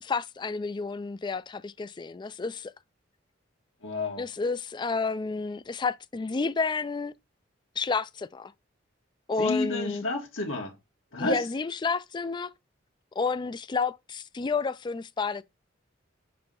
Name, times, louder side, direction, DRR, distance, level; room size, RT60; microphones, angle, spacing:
voice 1, 0.0-2.7 4.2-7.1 7.8-8.5 9.3-10.0 11.2-12.5 13.2-15.4, left 4 dB, 25° left, 0.3 m, -30 dB
voice 2, 3.8-4.2 9.4-10.8 11.1-11.4, left 2 dB, 75° left, 1.4 m, -30 dB
6.7 x 2.9 x 5.2 m
head